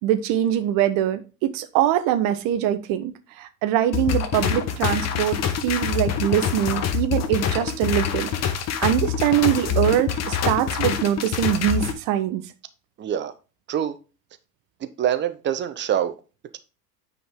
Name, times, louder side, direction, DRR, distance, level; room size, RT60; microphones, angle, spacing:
voice 1, 0.0-8.3 8.8-12.4, right 11 dB, 40° right, 1.3 m, -23 dB
sound 1, 3.9-11.9, left 7 dB, 30° left, 1.2 m, -25 dB
voice 2, 13.0-13.3 13.7-14.0 14.8-16.1, right 10 dB, 20° right, 1.0 m, -25 dB
9.3 x 5.1 x 3.8 m
figure-of-eight pair, 85°, 49 cm